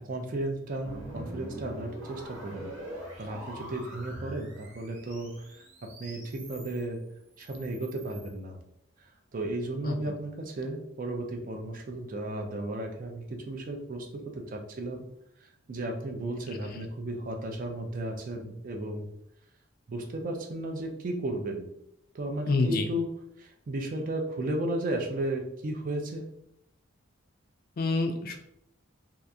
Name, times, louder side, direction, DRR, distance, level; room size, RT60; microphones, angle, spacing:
voice 1, 0.1-2.7 3.2-7.0 7.4-8.6 9.0-9.1 9.3-15.0 15.7-19.1 19.9-21.7 22.1-23.1 23.4-26.3, right 1 dB, 40° right, 3 dB, 0.3 m, -34 dB
sound 1, 0.8-6.8 7.3-8.3, right 1 dB, 70° right, 0.9 m, -44 dB
voice 2, 22.5-22.8 27.8-28.4, left 3 dB, 45° left, 5 dB, 0.3 m, -27 dB
2.7 x 2.4 x 2.3 m, 0.80 s
head